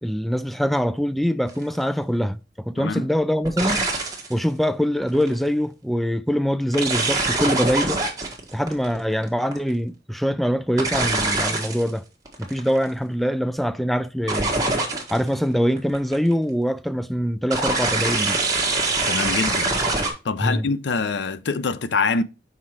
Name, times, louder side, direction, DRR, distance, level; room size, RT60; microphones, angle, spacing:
voice 1, 0.0-3.9 4.3-8.0 8.5-12.0 12.4-14.5 15.1-18.4 20.4-20.7, equal, ahead, 0.3 m, -23 dB
sound 1, 1.5-1.7 3.5-4.3 5.0-5.3 6.7-9.7 10.8-11.9 12.3-12.8 14.3-15.3 15.8-16.3 17.5-20.1, right 2 dB, 20° right, 1.5 m, -24 dB
voice 2, 19.1-19.7 20.2-22.2, left 4 dB, 90° left, 0.6 m, -24 dB
5.8 x 4.5 x 4.7 m
head